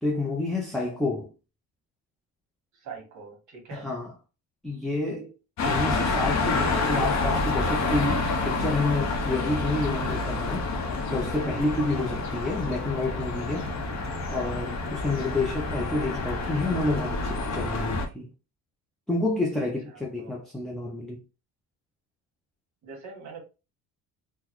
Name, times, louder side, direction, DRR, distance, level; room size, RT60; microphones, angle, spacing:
voice 1, 0.0-1.3 3.7-4.1 4.6-5.3 5.6-10.7 11.1-13.7 14.3-18.3 19.1-21.2, left 2 dB, ahead, 0.4 m, -29 dB
voice 2, 2.7-3.9 11.9-12.3 15.2-15.3 19.5-20.4 22.8-23.4, right 4 dB, 50° right, 1.5 m, -44 dB
sound 1, 5.6-18.1, left 3 dB, 50° left, 0.7 m, -28 dB
3.9 x 2.1 x 3.0 m
cardioid pair, 140°, 36 cm